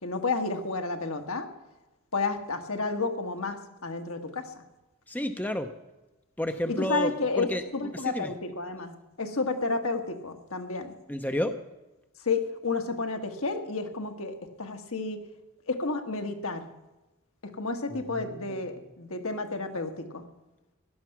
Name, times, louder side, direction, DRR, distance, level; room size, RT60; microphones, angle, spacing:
voice 1, 0.0-1.5 2.1-4.6 6.7-7.5 7.7-10.9 12.2-15.2 15.7-16.7 17.4-20.2, left 3 dB, 70° left, 5 dB, 1.5 m, -31 dB
voice 2, 5.1-5.7 6.4-7.1 7.4-8.3 11.1-11.6 17.9-18.6, left 1 dB, 10° left, 8 dB, 0.6 m, -31 dB
16.5 x 12.0 x 6.0 m, 1.1 s
head